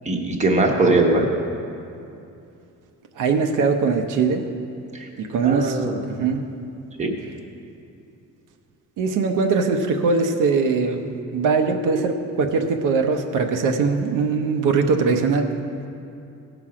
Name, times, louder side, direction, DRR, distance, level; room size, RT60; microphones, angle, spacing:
voice 1, 0.0-1.3 4.9-5.1 5.4-6.0 7.0-7.1, right 2 dB, 20° right, 1 dB, 1.0 m, -20 dB
voice 2, 3.2-4.4 5.2-6.4 9.0-15.5, right 4 dB, 70° right, 4 dB, 0.8 m, -21 dB
17.0 x 5.9 x 4.9 m, 2.6 s
cardioid pair, 170°, 32 cm